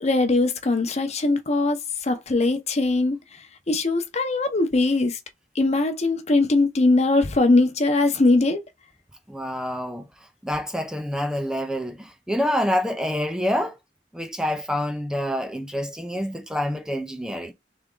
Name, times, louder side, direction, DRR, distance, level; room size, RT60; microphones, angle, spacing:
voice 1, 0.0-3.2 3.7-5.2 5.5-8.6, left 2 dB, 35° left, 0.8 m, -21 dB
voice 2, 9.3-10.1 10.4-13.8 14.1-17.5, left 1 dB, 5° right, 0.5 m, -27 dB
3.5 x 3.5 x 3.8 m
head